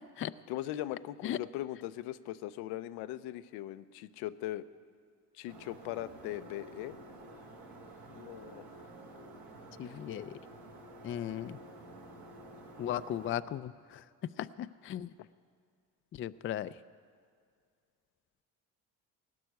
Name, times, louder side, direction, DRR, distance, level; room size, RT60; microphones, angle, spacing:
voice 1, 0.5-4.6 5.3-7.0 8.0-8.6 9.8-10.0 15.2-15.3, left 14 dB, 80° left, 13 dB, 0.6 m, -40 dB
sound 1, 5.5-13.4, right 2 dB, 65° right, 3.1 m, -51 dB
voice 2, 9.8-10.3 11.0-11.6 12.8-14.0 14.4-15.1 16.2-16.7, left 11 dB, 35° left, 14 dB, 0.4 m, -36 dB
18.0 x 6.2 x 9.3 m, 2.2 s
supercardioid pair, 80°, 38 cm